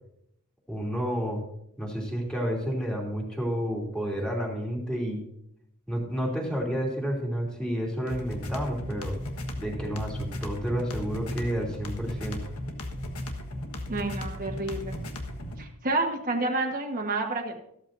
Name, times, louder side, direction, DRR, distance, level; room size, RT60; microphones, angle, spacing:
voice 1, 0.7-1.4 1.8-5.2 5.9-9.2 9.6-12.4, equal, 5° left, -1 dB, 2.9 m, -30 dB
sound 1, 8.1-15.6, left 1 dB, 80° left, 1.5 m, -36 dB
voice 2, 13.9-15.0 15.6-17.6, right 2 dB, 40° right, 1 dB, 1.4 m, -29 dB
14.5 x 13.0 x 2.6 m, 0.76 s
head